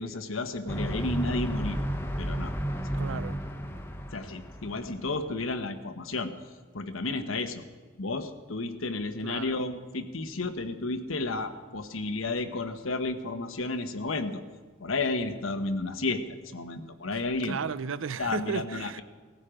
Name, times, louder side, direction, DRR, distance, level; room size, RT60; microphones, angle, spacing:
voice 1, 0.0-1.8 2.2-2.5 2.9-3.0 4.1-6.3 6.7-7.6 8.0-14.4 14.8-17.6 18.2-19.0, left 2 dB, 90° left, 1.2 m, -32 dB
sound 1, 0.7-5.3, equal, 10° left, 0.9 m, -33 dB
voice 2, 3.0-3.4 9.2-9.6 17.1-19.0, right 6 dB, 85° right, 0.6 m, -35 dB
17.5 x 15.0 x 5.0 m
head